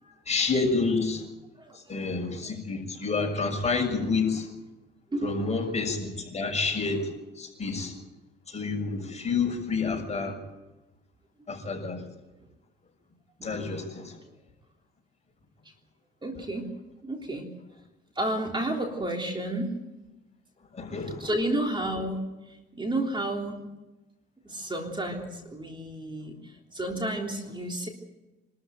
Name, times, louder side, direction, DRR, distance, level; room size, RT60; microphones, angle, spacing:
voice 1, 0.3-1.2 1.9-4.5 5.2-7.1 7.4-7.9 8.5-10.4 11.5-12.0 13.4-14.1 20.7-21.3, left 4 dB, 35° left, 1 dB, 6.8 m, -29 dB
voice 2, 1.6-2.0 5.1-5.6 13.4-13.7 16.2-16.7 17.0-17.5 18.1-19.7 21.2-23.6 24.4-27.9, right 1 dB, 25° right, 2 dB, 3.4 m, -32 dB
25.5 x 13.5 x 9.2 m, 1.1 s
cardioid pair, 90°, 20 cm